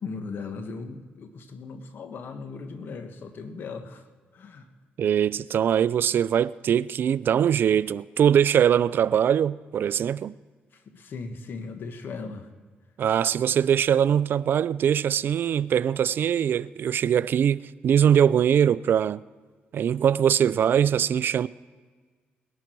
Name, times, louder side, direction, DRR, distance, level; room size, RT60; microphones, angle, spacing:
voice 1, 0.0-4.0 4.3-4.7 10.7-12.5, left 4 dB, 65° left, 1.5 m, -38 dB
voice 2, 5.0-10.3 13.0-19.2 19.7-21.5, right 9 dB, 65° right, 0.4 m, -22 dB
20.0 x 11.5 x 4.6 m
cardioid pair, 70°, 4 cm